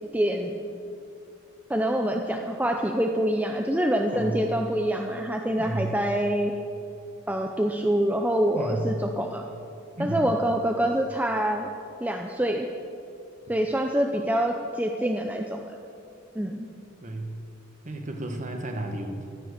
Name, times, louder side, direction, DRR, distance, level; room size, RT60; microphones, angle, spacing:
voice 1, 0.1-0.6 1.7-6.5 7.3-9.4 10.0-11.7 12.0-12.7 13.5-15.8 16.4-16.7, right 1 dB, 5° right, 2 dB, 0.5 m, -26 dB
voice 2, 4.1-4.6 5.6-6.0 8.6-8.9 10.0-10.3 17.0-17.3 17.8-19.2, right 1 dB, 35° right, 4 dB, 1.3 m, -32 dB
14.5 x 10.5 x 6.6 m, 2.6 s
head